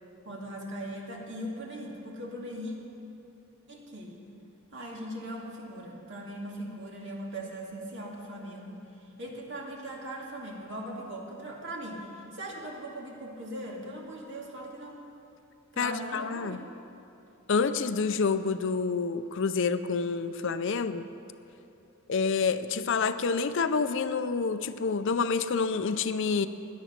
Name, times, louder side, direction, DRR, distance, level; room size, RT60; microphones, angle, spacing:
voice 1, 0.2-2.8 3.7-4.2 4.7-8.8 9.2-15.0 15.7-16.6, right 1 dB, 55° right, -1 dB, 2.3 m, -39 dB
voice 2, 15.8-16.6 17.5-21.1 22.1-26.5, left 5 dB, 60° left, 11 dB, 0.5 m, -28 dB
17.0 x 11.0 x 5.9 m, 2.8 s
head